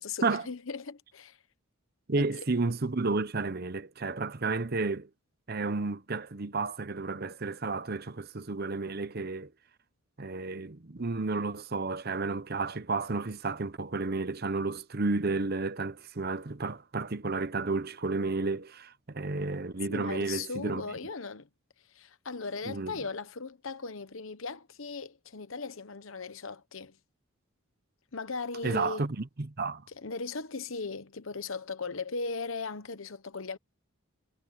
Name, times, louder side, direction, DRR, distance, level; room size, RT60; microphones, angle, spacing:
voice 1, 0.0-1.4 2.2-2.5 19.9-21.5 21.9-27.0 28.1-29.0 29.9-33.6, left 4 dB, 65° left, 1.0 m, -38 dB
voice 2, 2.1-5.1 5.5-9.5 10.2-20.8 22.6-23.0 28.6-29.8, right 3 dB, 45° right, 0.9 m, -32 dB
head